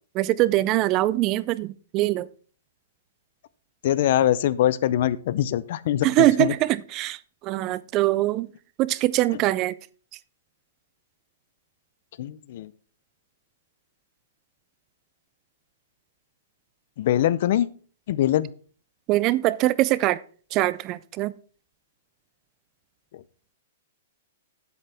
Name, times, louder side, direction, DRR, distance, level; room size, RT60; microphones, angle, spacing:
voice 1, 0.1-2.3 6.0-8.5 8.8-9.8 19.1-20.2 20.5-21.3, right 16 dB, 25° right, 0.3 m, -23 dB
voice 2, 3.8-6.5 12.2-12.7 17.0-17.7 18.1-18.5, left 12 dB, 50° left, 0.5 m, -23 dB
9.0 x 8.0 x 4.3 m
hypercardioid pair, 160°, 0 cm